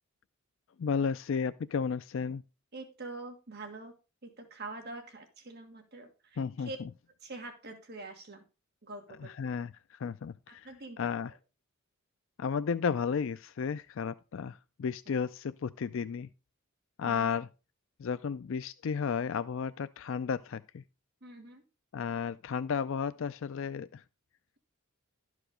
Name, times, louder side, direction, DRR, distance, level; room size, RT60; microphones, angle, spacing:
voice 1, 0.8-2.4 6.4-6.7 9.2-10.7 11.0-11.3 12.4-16.3 17.0-17.5 18.0-20.8 21.9-24.0, left 6 dB, 65° left, 0.4 m, -33 dB
voice 2, 2.7-3.9 4.2-6.8 7.2-8.4 8.8-9.3 10.6-11.4 15.1-15.2 17.0-17.4 21.2-21.6, right 2 dB, 50° right, 1.7 m, -45 dB
12.0 x 4.9 x 5.1 m
head